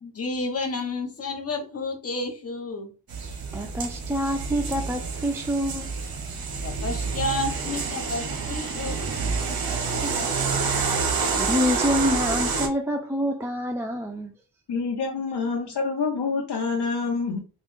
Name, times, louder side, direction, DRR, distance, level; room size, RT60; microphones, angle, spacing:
voice 1, 0.0-2.9 6.6-9.0 10.1-10.3, left 2 dB, 35° left, 0.8 m, -31 dB
sound 1, 3.1-12.7, right 4 dB, 55° right, 0.7 m, -28 dB
voice 2, 3.5-5.9 9.7-10.5 11.4-14.3, equal, 5° right, 0.3 m, -27 dB
voice 3, 14.7-17.4, left 4 dB, 65° left, 0.7 m, -27 dB
3.0 x 2.3 x 3.1 m
wide cardioid pair, 80°, 44 cm